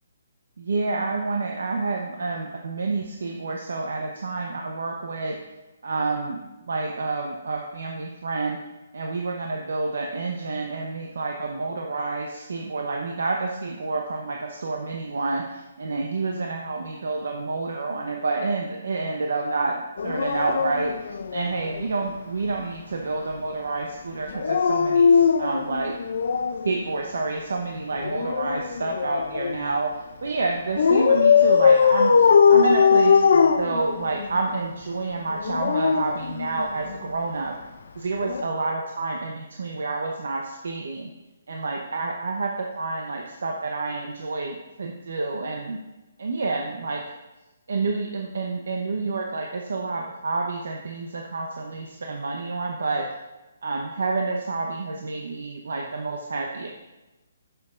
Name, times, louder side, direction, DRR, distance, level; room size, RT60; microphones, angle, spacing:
voice 1, 0.6-5.4 5.8-6.4 6.7-8.6 8.9-19.8 20.0-25.9 26.6-37.5 38.0-41.1 41.5-45.8 46.2-47.0 47.7-53.1 53.6-56.7, right 3 dB, 75° right, 1 dB, 0.9 m, -29 dB
Dog, 20.0-21.8 24.3-26.7 27.9-29.6 30.8-34.3 35.3-36.9 38.2-38.4, left 6 dB, 50° left, 0.4 m, -20 dB
10.5 x 7.0 x 2.5 m, 1.1 s
hypercardioid pair, 175°, 0 cm